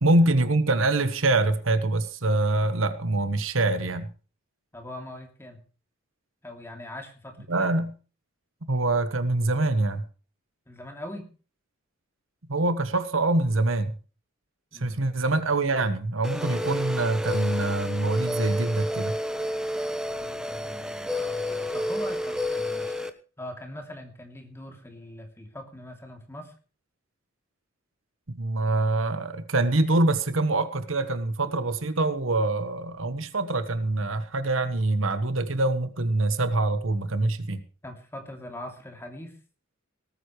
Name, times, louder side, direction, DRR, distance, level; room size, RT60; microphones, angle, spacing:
voice 1, 0.0-4.1 7.5-7.9 8.7-10.0 12.5-13.9 14.7-19.2 28.3-37.6, right 2 dB, 75° right, 11 dB, 1.4 m, -25 dB
voice 2, 4.7-5.6 6.4-7.9 10.7-11.3 14.7-15.0 20.1-23.0 23.4-26.5 37.8-39.4, left 1 dB, 10° left, 3 dB, 2.9 m, -41 dB
sound 1, 16.2-23.1, left 1 dB, 5° right, 1.0 m, -30 dB
18.5 x 13.5 x 3.2 m, 0.37 s
head